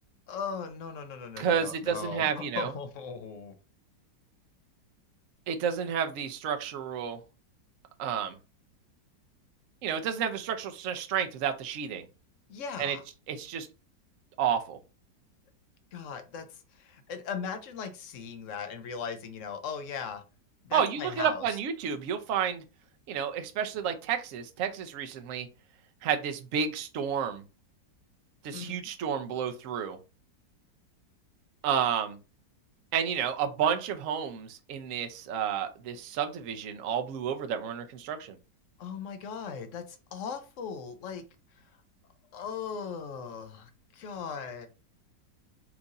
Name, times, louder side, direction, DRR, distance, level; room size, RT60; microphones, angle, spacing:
voice 1, 0.3-3.5 12.5-13.0 15.9-16.5 16.8-20.2 20.6-21.4 28.5-28.8 38.8-41.2 42.3-44.7, left 6 dB, 65° left, 8 dB, 0.8 m, -38 dB
voice 2, 1.4-2.7 5.5-7.2 8.0-8.3 9.8-12.0 12.8-13.0 13.3-13.7 14.4-14.8 20.7-22.6 23.1-25.5 26.0-27.4 28.4-30.0 31.6-32.2 32.9-38.4, right 8 dB, 65° right, 6 dB, 0.8 m, -30 dB
4.6 x 2.5 x 4.0 m, 0.32 s
omnidirectional pair, 2.0 m